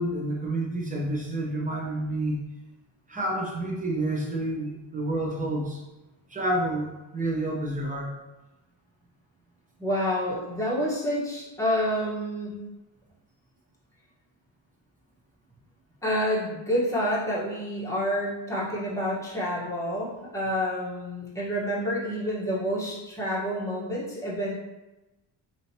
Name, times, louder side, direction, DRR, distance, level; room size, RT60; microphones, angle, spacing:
voice 1, 0.0-2.4 3.1-5.8 6.3-8.1, right 1 dB, 15° right, -2 dB, 0.8 m, -29 dB
voice 2, 9.8-12.6 16.0-24.5, equal, 5° left, -8 dB, 1.2 m, -28 dB
4.9 x 2.9 x 2.8 m, 1.0 s
cardioid pair, 140°, 47 cm